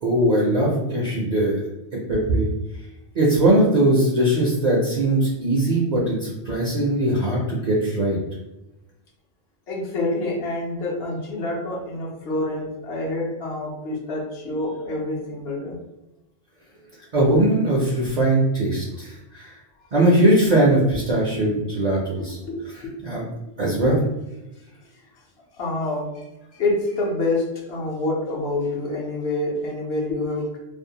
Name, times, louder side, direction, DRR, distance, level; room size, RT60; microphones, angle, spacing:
voice 1, 0.0-2.5 3.1-8.2 17.1-19.6 19.9-22.4 22.7-23.3 23.6-24.0, right 1 dB, 50° right, -4 dB, 0.6 m, -20 dB
voice 2, 9.7-15.8 19.8-19.9 22.4-23.0 25.1-25.2 25.5-26.2 26.5-30.6, left 2 dB, 75° left, -3 dB, 0.9 m, -27 dB
2.6 x 2.1 x 2.7 m, 0.97 s
omnidirectional pair, 1.1 m